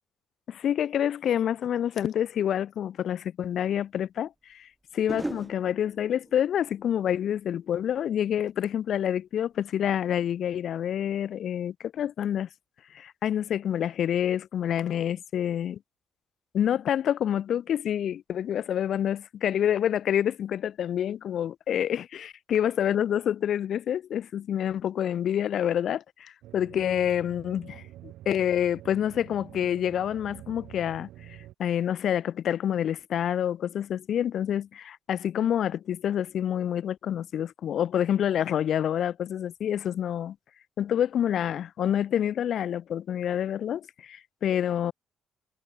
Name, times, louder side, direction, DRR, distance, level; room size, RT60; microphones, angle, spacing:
voice 1, 0.5-4.7 4.9-12.5 12.9-15.8 16.5-31.1 31.6-40.3 40.8-44.9, left 10 dB, 60° left, 1.0 m, -27 dB
sound 1, 3.7-3.8 5.1-8.2 8.5-8.9, right 1 dB, 10° right, 3.8 m, -41 dB
sound 2, 26.4-31.5, right 14 dB, 80° right, 7.5 m, -47 dB
cardioid pair, 95°, 0 cm